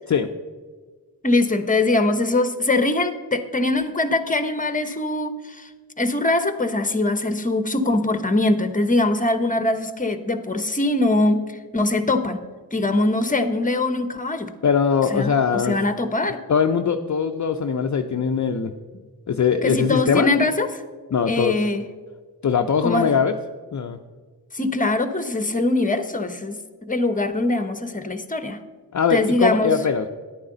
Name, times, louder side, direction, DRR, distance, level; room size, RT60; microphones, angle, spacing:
voice 1, 1.2-5.7 6.0-12.5 12.7-14.5 15.1-16.4 19.6-20.7 21.3-21.8 22.8-23.1 24.5-28.6 29.1-29.7, left 2 dB, 20° left, 9 dB, 1.0 m, -22 dB
voice 2, 14.6-15.8 16.5-18.7 19.3-20.3 21.1-21.6 22.4-23.4 23.7-24.0 28.9-30.1, left 6 dB, 45° left, 6 dB, 0.6 m, -21 dB
10.5 x 9.4 x 3.9 m, 1.5 s
cardioid pair, 40°, 41 cm